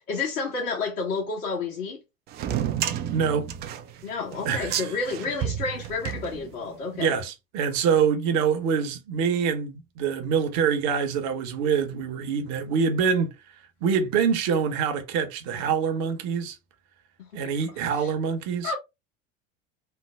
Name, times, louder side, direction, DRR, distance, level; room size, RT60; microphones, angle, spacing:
voice 1, 0.0-2.0 4.0-7.1 17.3-17.5 18.0-18.1 18.6-18.8, left 4 dB, 65° left, 1.4 m, -30 dB
sound 1, 2.3-6.9, right 10 dB, 25° right, 0.3 m, -31 dB
voice 2, 3.1-3.5 4.4-4.9 7.0-13.3 13.8-16.6 17.3-18.7, right 6 dB, 45° right, 0.9 m, -25 dB
3.2 x 2.0 x 3.4 m
figure-of-eight pair, 80°, 40 cm